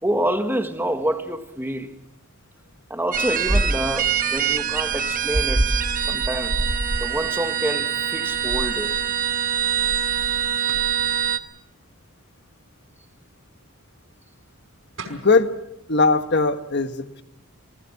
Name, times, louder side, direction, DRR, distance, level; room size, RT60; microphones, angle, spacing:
voice 1, 0.0-1.9 2.9-6.6 7.0-8.9, right 1 dB, 10° right, 1.7 m, -27 dB
sound 1, 3.1-11.4, right 6 dB, 40° right, 1.3 m, -23 dB
sound 2, 10.7-11.0 14.6-14.7 15.0-15.3, right 3 dB, 65° right, 5.2 m, -38 dB
voice 2, 15.1-15.5 15.9-17.2, left 3 dB, 55° left, 1.4 m, -20 dB
27.5 x 19.5 x 7.2 m
head